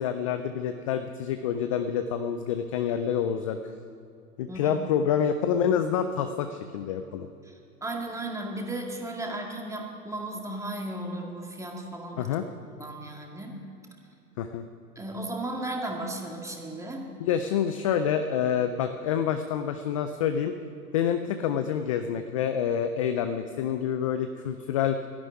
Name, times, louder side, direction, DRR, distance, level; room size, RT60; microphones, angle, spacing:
voice 1, 0.0-3.7 4.4-7.3 12.2-12.4 14.4-14.6 17.2-20.5 20.9-25.0, left 8 dB, 25° left, 8 dB, 0.3 m, -27 dB
voice 2, 4.5-4.8 7.4-12.3 12.7-13.6 15.0-17.1, right 1 dB, 5° right, 1 dB, 2.1 m, -35 dB
12.0 x 11.5 x 9.6 m, 2.7 s
hypercardioid pair, 115°, 47 cm